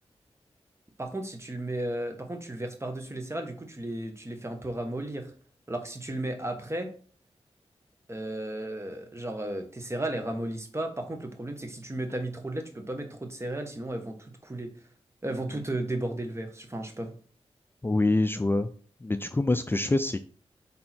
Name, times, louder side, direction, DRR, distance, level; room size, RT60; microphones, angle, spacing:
voice 1, 1.0-5.3 5.7-6.9 8.1-14.7 15.2-17.1, right 1 dB, 25° right, 5 dB, 1.2 m, -34 dB
voice 2, 17.8-18.7 19.0-20.2, left 2 dB, 20° left, 10 dB, 0.4 m, -25 dB
6.1 x 3.7 x 4.4 m, 0.43 s
wide cardioid pair, 65°, 11 cm